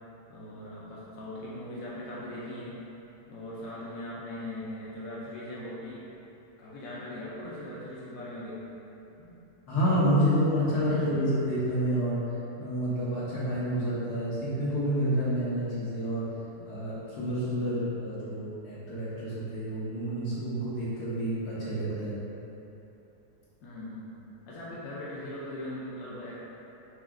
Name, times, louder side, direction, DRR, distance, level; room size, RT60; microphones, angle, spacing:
voice 1, 0.3-2.8 3.3-6.1 6.6-8.6 9.2-9.5 10.9-11.1 16.5-16.9 23.6-24.2 24.5-26.4, left 1 dB, 65° left, -7 dB, 1.1 m, -40 dB
voice 2, 9.7-12.2 12.6-16.2 16.6-22.2, equal, 85° left, -10 dB, 1.8 m, -29 dB
4.9 x 3.0 x 3.6 m, 2.9 s
omnidirectional pair, 1.6 m